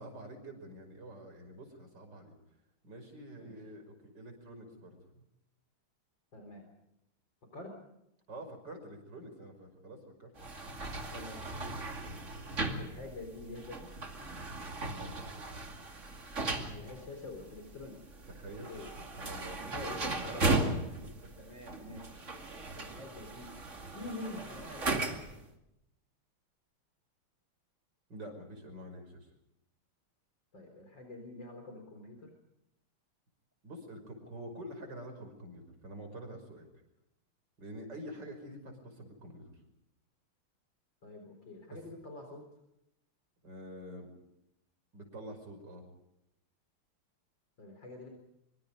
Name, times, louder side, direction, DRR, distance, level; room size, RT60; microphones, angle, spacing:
voice 1, 0.0-2.3 2.8-5.2 8.3-10.3 14.8-15.5 18.3-18.7 19.2-19.6 28.1-29.3 33.6-36.7 37.6-39.5 43.4-44.1 44.9-45.8, right 1 dB, 50° right, 5 dB, 6.2 m, -47 dB
voice 2, 6.3-6.7 7.5-7.8 11.1-11.9 12.8-13.9 16.6-18.0 18.7-18.9 19.7-21.1 21.4-22.2 22.7-23.5 23.9-25.4 30.5-32.3 41.0-42.4 47.6-48.1, left 2 dB, 55° left, 4 dB, 4.6 m, -46 dB
sound 1, 10.4-25.4, right 2 dB, 35° right, 2.6 m, -37 dB
25.0 x 25.0 x 5.2 m, 0.84 s
omnidirectional pair, 2.4 m